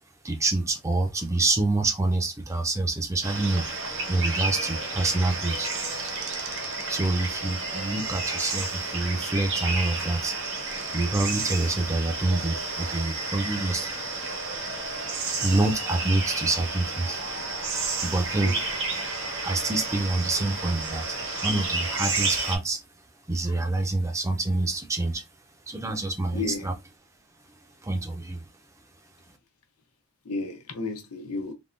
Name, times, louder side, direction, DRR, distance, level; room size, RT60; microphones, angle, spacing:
voice 1, 0.2-3.6 4.1-5.7 6.9-10.3 10.9-13.9 15.4-17.2 18.0-18.5 19.4-21.2 21.4-22.8 23.3-25.2 25.7-26.7 27.8-28.4, right 2 dB, 15° right, 0.4 m, -26 dB
sound 1, 3.2-22.6, right 3 dB, 55° right, 0.9 m, -31 dB
sound 2, 5.6-8.2 10.3-11.2, right 7 dB, 85° right, 0.6 m, -45 dB
voice 2, 26.3-26.7 30.2-31.5, left 3 dB, 90° left, 0.8 m, -33 dB
3.5 x 2.1 x 2.5 m
head